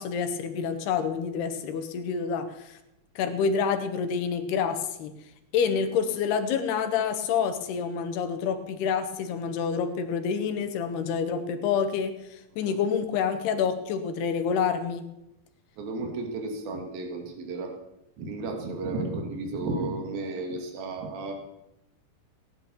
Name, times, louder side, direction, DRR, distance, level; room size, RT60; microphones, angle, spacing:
voice 1, 0.0-2.8 3.2-5.1 5.5-15.0, left 6 dB, 90° left, 8 dB, 3.4 m, -28 dB
voice 2, 15.8-17.7 18.2-21.3, right 2 dB, 70° right, 3 dB, 4.2 m, -33 dB
17.5 x 11.0 x 7.1 m, 0.87 s
omnidirectional pair, 4.5 m